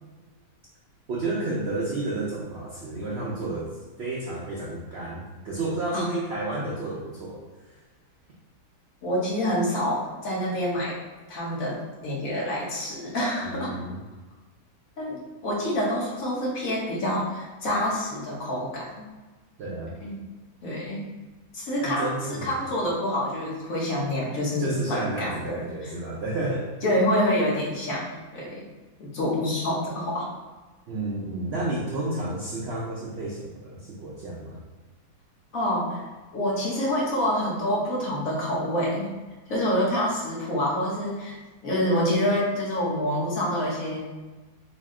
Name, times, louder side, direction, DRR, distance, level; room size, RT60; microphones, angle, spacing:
voice 1, 1.1-7.4 7.7-7.8 13.4-14.0 19.6-20.0 21.8-22.6 24.6-26.7 30.9-34.6, right 2 dB, 75° right, -4 dB, 0.6 m, -31 dB
voice 2, 9.0-11.0 11.3-13.7 15.0-19.0 20.0-20.2 20.6-21.1 21.5-25.6 26.8-28.7 29.0-30.3 35.5-36.0 36.3-39.1 39.5-41.4 41.6-44.0, equal, 60° left, -6 dB, 1.3 m, -27 dB
4.0 x 2.1 x 3.6 m, 1.2 s
omnidirectional pair, 1.7 m